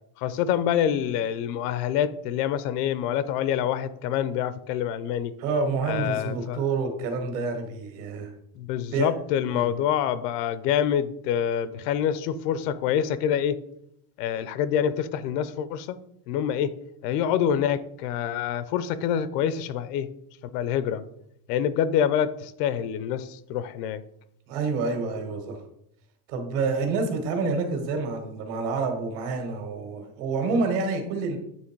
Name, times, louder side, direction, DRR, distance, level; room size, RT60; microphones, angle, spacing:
voice 1, 0.2-5.3 5.9-6.6 8.6-13.6 14.2-16.0 16.3-16.7 17.0-20.1 20.5-21.0 21.5-24.0, left 9 dB, 90° left, 15 dB, 0.7 m, -26 dB
voice 2, 5.4-8.3 8.9-9.1 9.4-9.7 24.5-25.6 26.3-31.4, right 4 dB, 60° right, 4 dB, 1.9 m, -28 dB
9.1 x 3.4 x 4.6 m, 0.75 s
cardioid pair, 165°, 47 cm